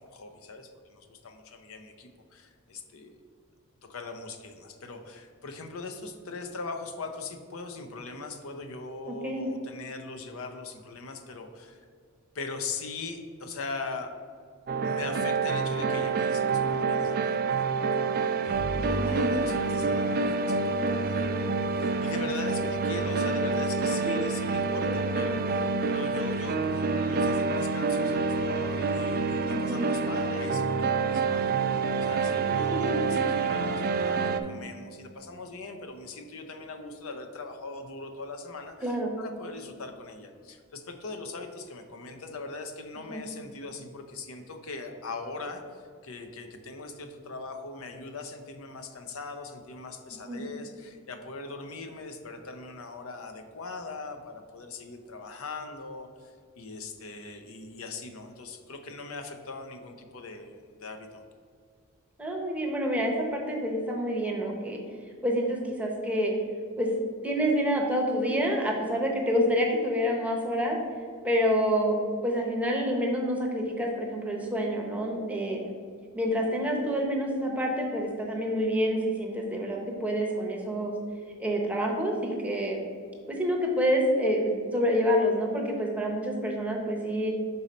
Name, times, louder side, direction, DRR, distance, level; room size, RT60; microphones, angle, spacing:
voice 1, 0.0-3.1 3.8-11.9 12.3-14.1 14.8-17.6 17.9-21.3 21.7-31.5 32.0-61.2, left 3 dB, 65° left, 5 dB, 0.6 m, -41 dB
voice 2, 9.1-9.5 18.9-19.3 24.1-24.2 24.9-25.1 29.5-29.9 32.1-32.2 32.7-33.3 38.8-39.2 43.1-43.2 50.3-50.4 62.2-64.8 65.2-66.3 66.8-66.9 67.2-70.8 71.2-72.0 72.2-75.6 76.1-80.9 81.4-82.8 83.3-87.3, equal, 5° right, 0 dB, 0.7 m, -28 dB
sound 1, 14.7-34.4, right 4 dB, 45° right, 0.3 m, -27 dB
5.5 x 4.1 x 5.0 m, 2.1 s
head